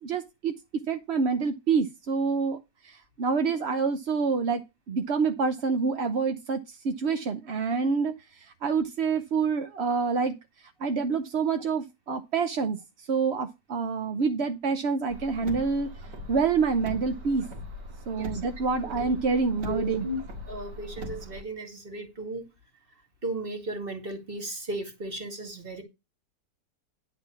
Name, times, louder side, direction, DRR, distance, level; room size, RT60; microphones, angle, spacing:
voice 1, 0.0-0.5 0.9-2.6 2.8-10.4 10.8-15.9 16.3-17.5 18.1-20.1, right 5 dB, 50° right, 0.9 m, -27 dB
Car, 15.1-21.4, left 1 dB, 90° right, 2.7 m, -40 dB
voice 2, 19.7-20.2 20.5-22.5 23.2-25.8, right 1 dB, 30° right, 2.5 m, -35 dB
11.0 x 4.0 x 7.0 m
omnidirectional pair, 1.8 m